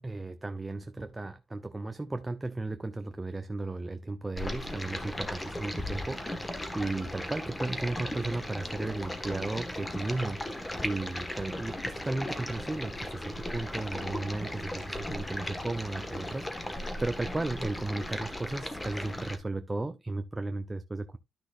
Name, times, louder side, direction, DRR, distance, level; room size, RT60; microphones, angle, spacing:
voice 1, 0.0-10.5 10.8-21.2, right 2 dB, 15° right, 0.6 m, -35 dB
Stream, 4.4-19.4, left 1 dB, 10° left, 1.4 m, -37 dB
12.0 x 6.1 x 2.5 m
cardioid pair, 110°, 0 cm